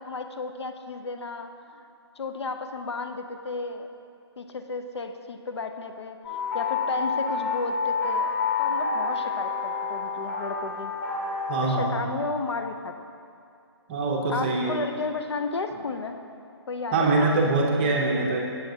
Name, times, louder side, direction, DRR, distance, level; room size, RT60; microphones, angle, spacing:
voice 1, 0.0-1.8 2.2-3.9 4.4-8.3 8.6-10.9 11.6-12.9 14.3-16.1 16.7-17.5, left 3 dB, 75° left, 6 dB, 0.5 m, -33 dB
sound 1, 6.2-11.8, left 5 dB, 25° left, 1.0 m, -28 dB
voice 2, 11.5-12.1 13.9-14.8 16.9-18.4, right 3 dB, 20° right, -1 dB, 0.5 m, -24 dB
7.2 x 7.0 x 2.6 m, 2.4 s
hypercardioid pair, 155°, 14 cm